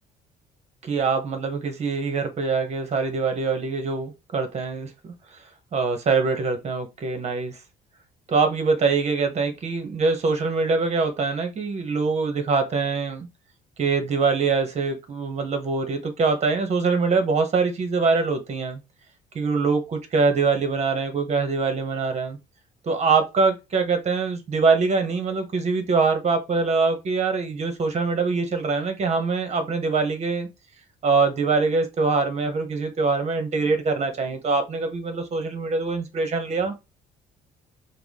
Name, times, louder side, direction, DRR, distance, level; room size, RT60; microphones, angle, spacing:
voice 1, 0.8-5.1 5.7-7.6 8.3-13.3 13.8-18.8 19.3-22.4 22.8-30.5 31.0-36.7, right 4 dB, 40° right, 1.1 m, -23 dB
4.8 x 2.3 x 3.7 m
cardioid pair, 110°, 17 cm